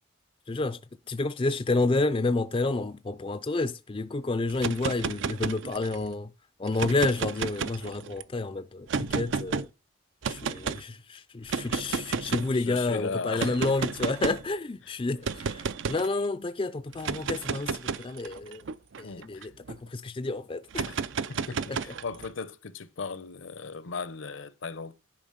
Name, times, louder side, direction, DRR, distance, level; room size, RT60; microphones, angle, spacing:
voice 1, 0.5-0.8 1.1-6.3 6.6-9.7 10.3-15.6 15.9-18.6 19.0-19.5 19.9-20.8 21.7-21.8, left 3 dB, 25° left, 0.4 m, -29 dB
sound 1, 4.5-6.1 6.7-8.2 8.9-9.7 10.2-10.8 11.5-12.6 13.4-14.5 15.2-16.1 16.9-19.8 20.7-22.3, right 5 dB, 60° right, 0.5 m, -32 dB
voice 2, 12.3-13.6 14.8-14.9 19.0-19.5 20.9-21.0 21.3-24.9, left 4 dB, 65° left, 0.7 m, -37 dB
10.5 x 5.0 x 5.2 m
head